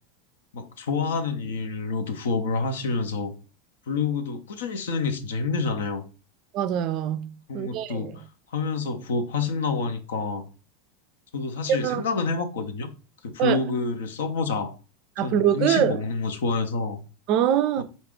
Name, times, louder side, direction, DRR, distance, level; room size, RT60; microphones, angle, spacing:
voice 1, 0.5-3.3 3.9-6.1 7.5-8.2 8.5-10.4 11.3-12.9 13.2-14.7 15.2-17.0 17.8-17.9, left 4 dB, 75° left, 0.5 m, -28 dB
voice 2, 6.5-8.1 11.7-12.0 13.4-13.6 15.2-16.0 17.3-17.8, right 10 dB, 50° right, 0.3 m, -23 dB
3.9 x 2.3 x 3.6 m
hypercardioid pair, 95°, 0 cm